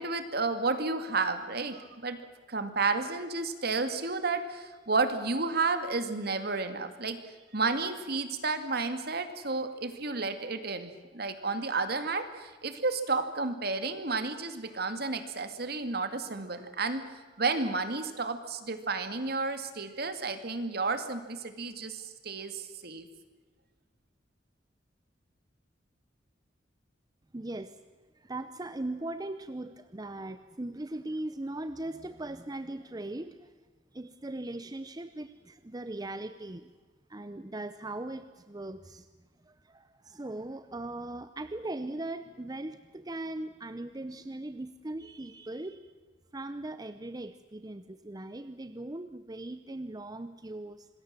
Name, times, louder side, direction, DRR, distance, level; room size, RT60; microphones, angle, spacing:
voice 1, 0.0-2.2 2.5-7.2 7.5-23.1, right 3 dB, 55° right, 8 dB, 2.2 m, -32 dB
voice 2, 27.3-27.8 28.2-33.5 33.9-36.7 37.1-39.1 39.4-45.9 46.3-50.9, right 2 dB, 20° right, 11 dB, 0.7 m, -39 dB
26.5 x 20.5 x 7.5 m, 1.3 s
head